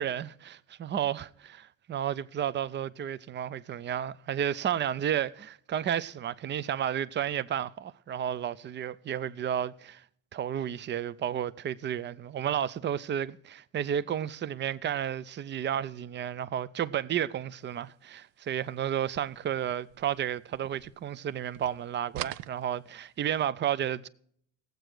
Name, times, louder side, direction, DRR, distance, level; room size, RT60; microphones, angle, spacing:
voice 1, 0.0-10.0 10.3-24.1, right 9 dB, 30° right, 0.5 m, -32 dB
sound 1, 19.0-21.3 21.5-23.3, right 15 dB, 75° right, 0.5 m, -43 dB
17.5 x 7.9 x 4.8 m
supercardioid pair, 80°, 38 cm